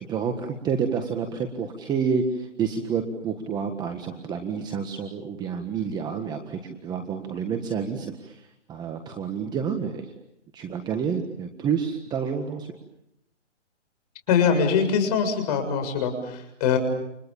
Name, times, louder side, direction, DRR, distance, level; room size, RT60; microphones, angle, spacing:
voice 1, 0.0-8.4 8.7-10.1 10.5-12.7, right 6 dB, 10° right, 6 dB, 1.6 m, -29 dB
voice 2, 14.3-16.8, left 6 dB, 35° left, 6 dB, 7.1 m, -23 dB
30.0 x 27.5 x 7.2 m, 0.83 s
hypercardioid pair, 155°, 36 cm